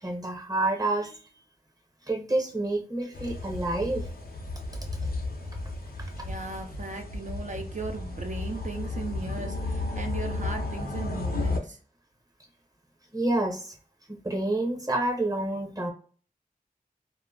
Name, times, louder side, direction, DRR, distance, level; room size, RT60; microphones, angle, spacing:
voice 1, 0.0-1.2 2.1-4.1 5.0-5.1 13.1-13.8 14.1-15.9, right 2 dB, 25° right, 2 dB, 0.8 m, -28 dB
sound 1, 3.1-11.6, left 2 dB, 80° left, 0.6 m, -33 dB
voice 2, 6.2-11.8, right 3 dB, 55° right, 3 dB, 0.4 m, -37 dB
2.1 x 2.0 x 3.6 m, 0.41 s
wide cardioid pair, 60°, 15 cm